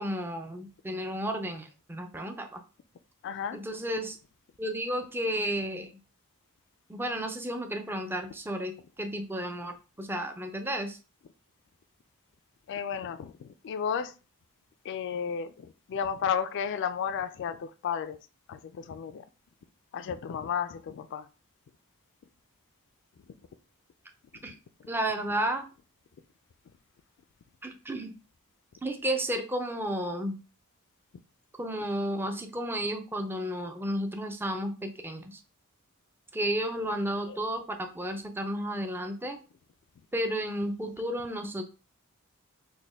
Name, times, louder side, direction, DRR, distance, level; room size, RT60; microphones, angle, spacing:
voice 1, 0.0-2.6 3.5-4.2 4.6-6.0 6.9-11.0 24.4-24.6 24.9-25.6 27.6-28.1 28.8-30.4 31.6-35.4 36.3-39.4 40.1-41.6, right 1 dB, 10° right, 0.4 m, -32 dB
voice 2, 3.2-3.6 12.7-14.1 14.8-18.2 18.5-19.2 19.9-21.3 24.5-24.6 37.3-37.4, left 7 dB, 55° left, 0.3 m, -33 dB
4.1 x 2.2 x 3.4 m
head